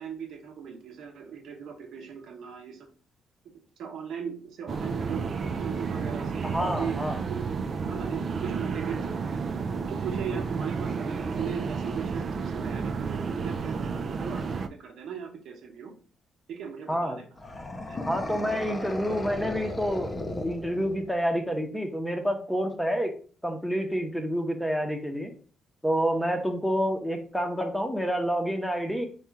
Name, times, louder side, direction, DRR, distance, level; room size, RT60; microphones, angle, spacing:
voice 1, 0.0-2.9 3.8-7.0 7.3-7.4 7.9-9.4 9.7-15.9 16.5-17.3 17.9-18.0, right 7 dB, 75° right, 2 dB, 0.9 m, -38 dB
sound 1, 4.7-14.7, right 5 dB, 50° right, 0.4 m, -31 dB
voice 2, 6.4-7.2 16.9-17.2 18.1-23.1 23.4-25.3 25.8-29.1, equal, ahead, 4 dB, 0.9 m, -28 dB
sound 2, 17.4-21.2, left 2 dB, 20° left, 0.5 m, -35 dB
4.2 x 2.4 x 4.7 m, 0.41 s
cardioid pair, 90°, 0 cm